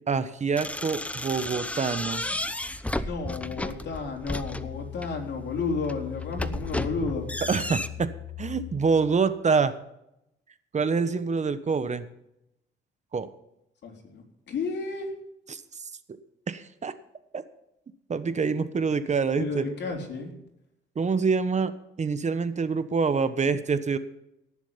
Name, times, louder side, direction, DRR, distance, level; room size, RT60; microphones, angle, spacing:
voice 1, 0.1-2.2 7.5-8.1 8.4-9.7 10.7-12.1 13.1-13.3 15.5-15.6 16.5-16.9 17.3-17.4 18.1-19.6 20.9-21.7 22.0-24.0, right 5 dB, 35° right, 12 dB, 1.1 m, -26 dB
sound 1, 0.6-5.2 5.7-7.9, left 1 dB, 5° left, 0.8 m, -33 dB
sound 2, 1.8-9.3, left 12 dB, 45° left, 2.2 m, -42 dB
voice 2, 3.0-7.3 13.8-15.1 19.4-20.3, left 4 dB, 60° left, 1 dB, 4.1 m, -32 dB
18.0 x 7.3 x 5.8 m, 0.83 s
cardioid pair, 90°, 20 cm